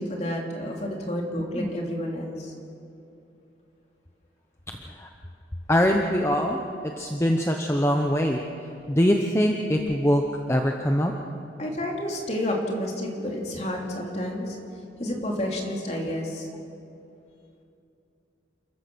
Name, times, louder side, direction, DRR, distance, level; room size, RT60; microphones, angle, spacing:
voice 1, 0.0-2.5 11.6-14.6 15.0-16.5, left 1 dB, 35° left, -1 dB, 3.2 m, -30 dB
voice 2, 5.7-6.6 7.0-8.4 8.9-10.2 10.5-11.1, equal, 15° left, 2 dB, 0.9 m, -22 dB
28.5 x 14.5 x 6.3 m, 2.7 s
head